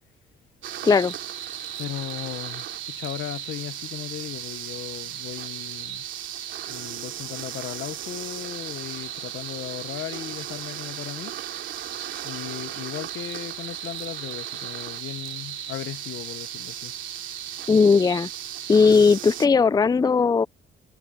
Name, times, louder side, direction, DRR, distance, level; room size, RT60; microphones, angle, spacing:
sound 1, 0.6-19.5, right 11 dB, 75° right, 2.7 m, -35 dB
voice 1, 0.8-1.1 17.7-18.3 18.7-20.5, left 5 dB, 20° left, 0.4 m, -18 dB
voice 2, 1.8-6.0 6.7-11.4 12.2-16.9, left 13 dB, 75° left, 1.1 m, -36 dB
cardioid pair, 90°, 20 cm